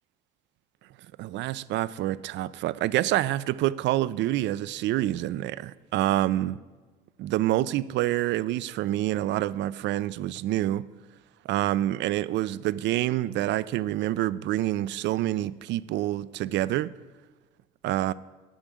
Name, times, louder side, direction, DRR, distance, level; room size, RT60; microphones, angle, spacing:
voice 1, 1.2-6.5 7.2-10.9 11.5-16.9 17.8-18.1, right 14 dB, 60° right, 0.4 m, -27 dB
10.0 x 6.1 x 8.3 m
hypercardioid pair, 70°, 21 cm